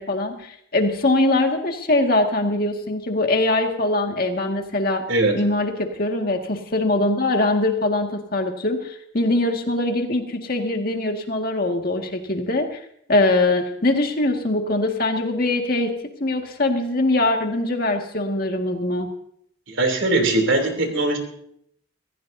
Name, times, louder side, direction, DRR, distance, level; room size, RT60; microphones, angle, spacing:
voice 1, 0.0-5.0 5.3-5.7 6.0-12.7 13.1-15.9 16.2-19.1, left 2 dB, 50° left, 3 dB, 1.9 m, -22 dB
voice 2, 19.7-21.2, right 2 dB, 75° right, 4 dB, 3.2 m, -20 dB
26.0 x 15.5 x 2.7 m, 0.68 s
head